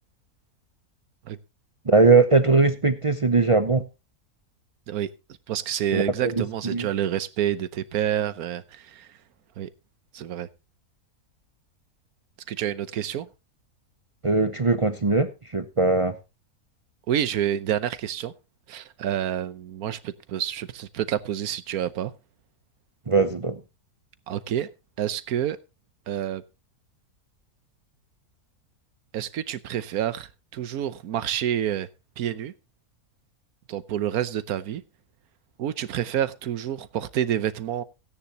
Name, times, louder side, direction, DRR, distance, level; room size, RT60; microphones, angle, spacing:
voice 1, 1.9-3.8 5.9-6.4 6.7-6.9 14.2-16.2 23.1-23.6, right 3 dB, 40° right, 0.4 m, -20 dB
voice 2, 5.5-9.1 9.6-9.7 10.1-10.5 12.5-13.3 17.1-18.3 18.7-22.1 24.3-24.7 25.0-25.6 26.1-26.4 29.1-31.9 32.2-32.5 33.7-34.8 35.6-37.8, right 10 dB, 80° right, 1.3 m, -28 dB
16.5 x 9.9 x 2.9 m
omnidirectional pair, 1.6 m